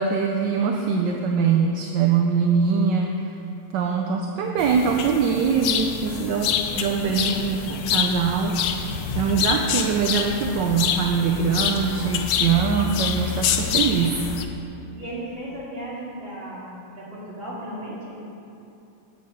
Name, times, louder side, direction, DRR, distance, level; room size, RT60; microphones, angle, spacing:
voice 1, 0.0-3.1 3.7-8.7 9.1-14.1, right 6 dB, 70° right, 2 dB, 1.1 m, -23 dB
sound 1, 4.6-14.4, left 8 dB, 85° left, 1.6 m, -27 dB
voice 2, 6.1-6.4 6.7-7.4 15.0-18.2, right 1 dB, 25° right, -9 dB, 3.0 m, -36 dB
9.7 x 8.0 x 5.6 m, 2.8 s
omnidirectional pair, 2.3 m